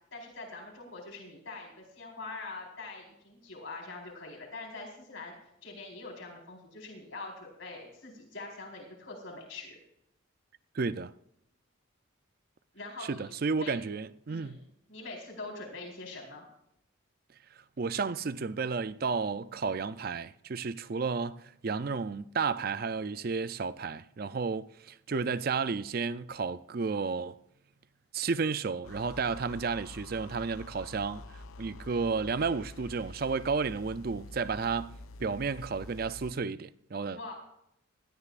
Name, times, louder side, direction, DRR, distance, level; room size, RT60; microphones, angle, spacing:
voice 1, 0.1-5.3 5.6-9.8 12.7-13.8 14.3-14.6 14.9-16.5 37.2-37.3, left 3 dB, 75° left, 4.4 m, -44 dB
voice 2, 10.7-11.1 13.1-14.6 17.8-27.4 28.1-31.2 31.6-34.9 35.2-37.3, right 4 dB, 45° right, 0.4 m, -32 dB
sound 1, 28.8-36.4, left 2 dB, 90° left, 0.5 m, -47 dB
19.5 x 13.0 x 2.5 m
head